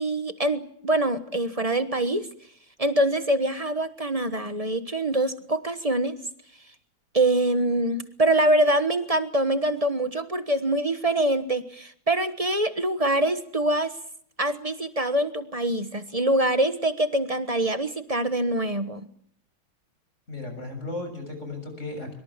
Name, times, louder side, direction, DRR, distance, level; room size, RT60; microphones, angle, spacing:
voice 1, 0.0-2.3 2.8-6.2 7.1-13.9 14.4-19.1, right 1 dB, 25° right, 10 dB, 1.0 m, -24 dB
voice 2, 20.3-22.1, left 2 dB, 35° left, 6 dB, 7.5 m, -35 dB
25.0 x 24.5 x 7.4 m, 0.64 s
omnidirectional pair, 2.3 m